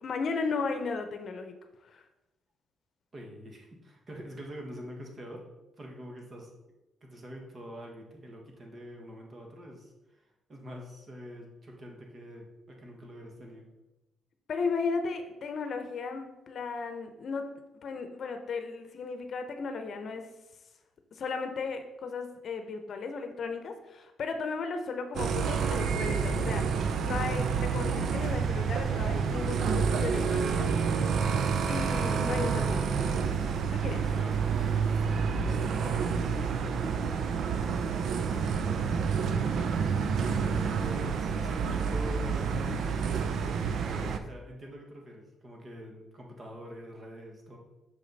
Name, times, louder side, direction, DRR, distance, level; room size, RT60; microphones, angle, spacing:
voice 1, 0.0-1.5 1.9-2.0 14.5-17.5 17.8-20.2 21.1-30.9 31.7-32.8 33.7-34.0, left 4 dB, 55° left, 7 dB, 0.8 m, -35 dB
voice 2, 3.1-5.4 5.8-6.5 7.0-13.7 33.6-37.2 38.0-39.3 40.3-47.6, equal, 40° right, 1 dB, 1.6 m, -45 dB
sound 1, 25.2-44.2, right 6 dB, 65° right, 0.5 m, -29 dB
6.3 x 5.0 x 4.1 m, 0.99 s
cardioid pair, 90°, 0 cm